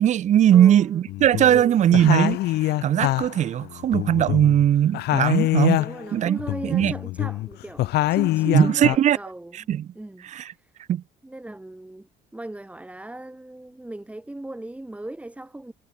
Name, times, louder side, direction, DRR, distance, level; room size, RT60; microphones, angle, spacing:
voice 1, 0.0-5.8 6.1-6.9 8.5-9.2 9.7-9.9 10.3-10.5 10.9-11.0, right 10 dB, 45° right, 0.6 m, -19 dB
voice 2, 0.5-1.0 1.4-1.8 5.8-9.7 10.0-10.7 11.2-15.7, right 1 dB, 10° right, 1.8 m, -37 dB
sound 1, 1.1-1.6 1.9-4.7 4.9-6.1 6.4-9.0, left 17 dB, 75° left, 1.0 m, -24 dB
cardioid pair, 110°, 17 cm